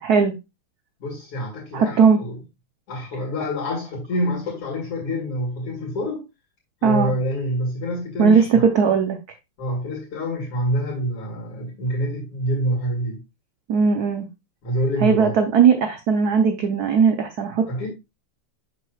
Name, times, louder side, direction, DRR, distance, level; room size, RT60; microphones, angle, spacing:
voice 1, 0.0-0.3 1.7-2.2 6.8-7.1 8.2-9.2 13.7-14.3 15.0-17.7, right 6 dB, 70° right, 0.9 m, -18 dB
voice 2, 1.0-2.4 2.9-6.3 6.8-8.7 9.6-13.2 14.6-15.4 17.7-17.9, equal, 85° left, 3.0 m, -26 dB
7.6 x 6.3 x 2.3 m
omnidirectional pair, 2.4 m